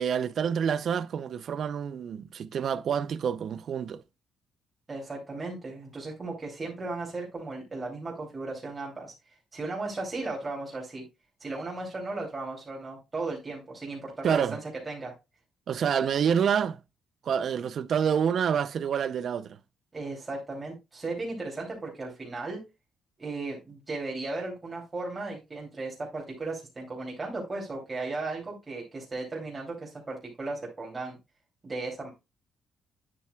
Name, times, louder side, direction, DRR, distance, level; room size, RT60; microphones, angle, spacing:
voice 1, 0.0-4.0 14.2-14.6 15.7-16.8 17.2-19.6, right 7 dB, 60° right, 0.5 m, -27 dB
voice 2, 4.9-9.1 9.5-11.0 11.4-14.6 14.9-15.1 19.9-22.6 23.2-31.2 31.6-32.1, right 3 dB, 30° right, 2.9 m, -36 dB
9.3 x 7.5 x 2.3 m
cardioid pair, 90°, 0 cm